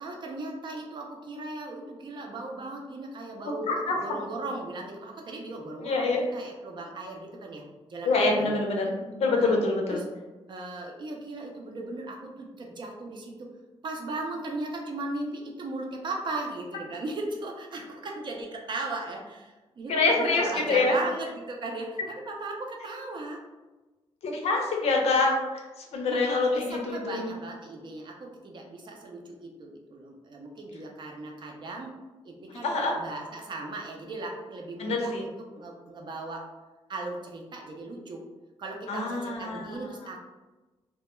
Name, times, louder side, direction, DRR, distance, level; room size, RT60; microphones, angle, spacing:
voice 1, 0.0-7.6 7.9-8.6 9.4-9.5 9.9-10.0 10.5-13.5 13.8-23.4 26.1-31.9 32.2-36.4 36.9-38.2 38.6-40.2, right 2 dB, 45° right, 0 dB, 0.5 m, -37 dB
voice 2, 5.8-6.2 8.0-10.0 19.9-21.0 24.2-27.3 32.6-32.9 34.8-35.2 38.9-39.8, left 3 dB, 75° left, 1 dB, 0.6 m, -26 dB
2.2 x 2.1 x 2.9 m, 1.2 s
wide cardioid pair, 130°, 11 cm